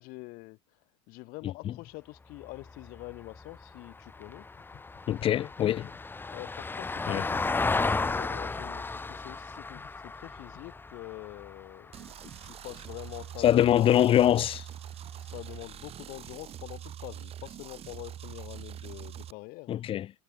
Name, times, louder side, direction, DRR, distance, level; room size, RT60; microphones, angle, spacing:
voice 1, 0.0-4.5 6.3-12.1 12.4-14.3 15.2-19.8, left 24 dB, 50° left, 7.5 m, -45 dB
Vehicle, 2.3-12.8 15.1-15.2, left 3 dB, 10° left, 1.5 m, -34 dB
voice 2, 5.1-5.9 7.1-7.2 13.4-14.6 19.7-20.1, left 11 dB, 30° left, 0.7 m, -23 dB
sound 1, 11.9-19.3, right 10 dB, 35° right, 2.4 m, -44 dB
hypercardioid pair, 95°, 18 cm